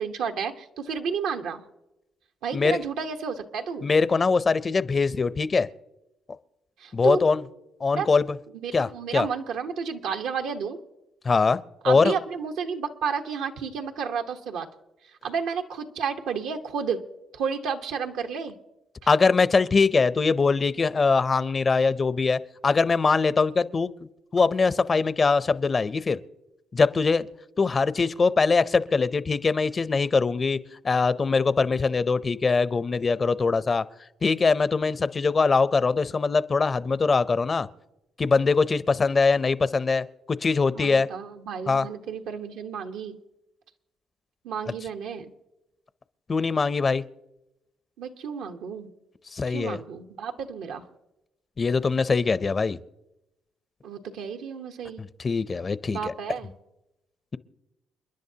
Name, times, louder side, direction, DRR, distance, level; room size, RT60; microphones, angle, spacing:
voice 1, 0.0-1.6 2.4-3.9 6.8-7.2 8.0-8.1 8.6-10.8 11.8-14.7 15.0-17.0 17.3-18.5 40.7-43.2 44.4-45.3 48.0-48.9 49.5-50.8 53.8-55.0 55.9-56.5, right 6 dB, 85° right, 5 dB, 1.1 m, -31 dB
voice 2, 3.8-5.7 6.9-7.4 7.8-8.2 8.7-9.3 11.2-11.6 11.9-12.1 19.1-23.9 24.3-26.2 26.7-27.3 27.6-30.6 30.8-33.8 34.2-37.7 38.2-41.1 41.7-41.9 46.3-47.0 49.3-49.8 51.6-52.8 55.0-56.1, left 4 dB, 35° left, 16 dB, 0.6 m, -22 dB
29.5 x 10.5 x 2.8 m, 0.92 s
cardioid pair, 75°, 0 cm